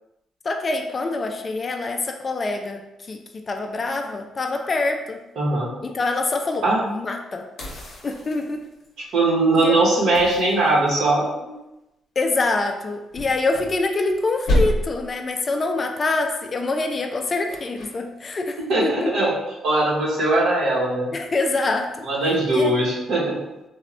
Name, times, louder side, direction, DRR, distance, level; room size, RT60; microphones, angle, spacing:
voice 1, 0.4-2.8 3.1-5.2 5.8-7.4 8.0-8.6 9.6-9.8 12.2-19.1 21.1-22.1 22.5-22.8, left 3 dB, 35° left, 4 dB, 0.3 m, -25 dB
voice 2, 5.4-5.7 6.6-6.8 9.1-11.5 18.7-19.3 19.6-21.1 22.0-23.4, right 2 dB, 70° right, -4 dB, 0.8 m, -20 dB
sound 1, 7.6-8.9 10.1-11.3 13.1-14.2 14.5-15.1 17.5-17.9, equal, 65° left, 0.7 m, -27 dB
3.0 x 2.1 x 2.4 m, 0.97 s
cardioid pair, 90°, 0 cm